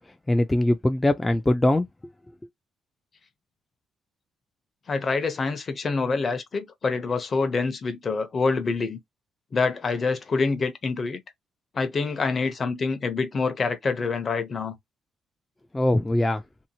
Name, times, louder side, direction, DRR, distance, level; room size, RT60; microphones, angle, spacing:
voice 1, 0.3-1.9 15.7-16.4, left 1 dB, 15° left, 0.3 m, -21 dB
voice 2, 4.9-9.0 9.5-11.2 11.7-14.7, left 4 dB, 40° left, 0.7 m, -26 dB
2.8 x 2.1 x 2.7 m
cardioid pair, 90°, 0 cm